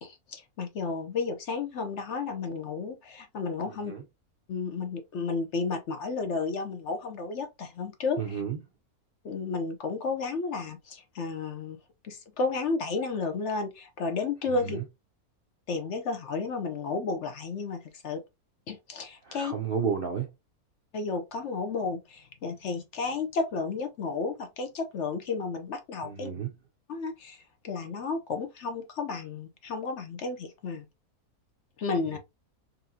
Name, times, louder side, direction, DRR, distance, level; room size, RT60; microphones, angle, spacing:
voice 1, 0.0-3.9 4.5-8.4 9.2-11.8 12.0-14.8 15.7-18.2 18.7-19.5 20.9-26.3 26.9-30.9 31.8-32.2, left 4 dB, 60° left, 0.8 m, -32 dB
voice 2, 3.7-4.0 8.2-8.6 14.5-14.8 19.2-20.3 26.0-26.5 32.1-32.2, right 7 dB, 60° right, 0.5 m, -32 dB
4.1 x 2.6 x 2.7 m
omnidirectional pair, 1.6 m